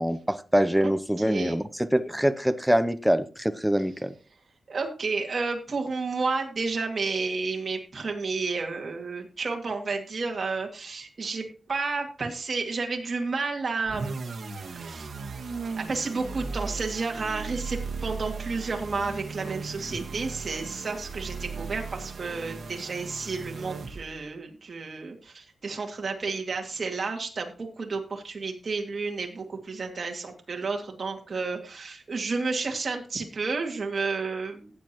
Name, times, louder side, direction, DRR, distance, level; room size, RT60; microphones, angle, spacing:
voice 1, 0.0-4.1, equal, ahead, 10 dB, 0.6 m, -24 dB
voice 2, 1.2-1.6 4.7-14.2 14.8-15.1 15.8-34.7, right 4 dB, 45° right, 2 dB, 2.2 m, -31 dB
sound 1, 13.9-24.3, right 4 dB, 65° right, 1.6 m, -37 dB
15.5 x 8.5 x 3.0 m, 0.36 s
wide cardioid pair, 140°, 0 cm